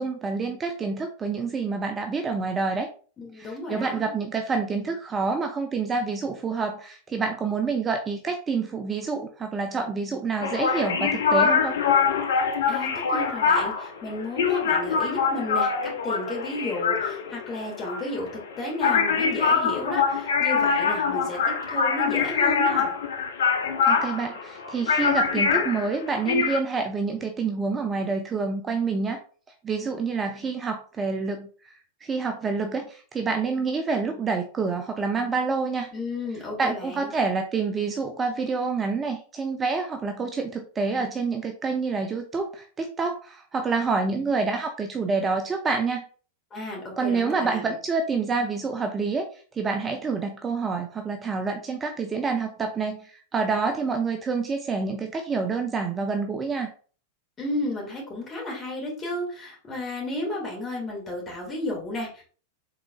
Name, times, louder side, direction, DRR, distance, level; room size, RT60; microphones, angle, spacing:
voice 1, 0.0-2.9 3.3-11.8 23.8-29.2 29.6-35.9 36.6-46.0 47.0-56.7, right 4 dB, 20° right, 5 dB, 0.5 m, -27 dB
voice 2, 3.2-4.1 12.7-18.3 18.6-23.0 35.9-37.1 46.5-47.8 57.4-62.2, left 1 dB, 25° left, -2 dB, 2.2 m, -33 dB
sound 1, 10.4-26.6, left 6 dB, 60° left, 0.7 m, -24 dB
4.8 x 3.8 x 2.4 m, 0.41 s
figure-of-eight pair, 90°, 0 cm